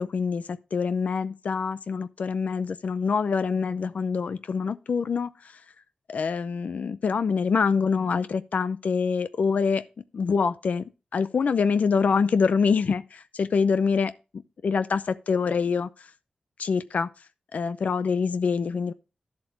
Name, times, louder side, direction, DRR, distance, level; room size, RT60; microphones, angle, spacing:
voice 1, 0.0-5.6 6.1-9.8 10.1-14.1 14.6-16.1 16.6-17.1 17.5-18.9, left 5 dB, 75° left, 0.6 m, -25 dB
11.0 x 7.5 x 4.6 m
cardioid pair, 55°, 3 cm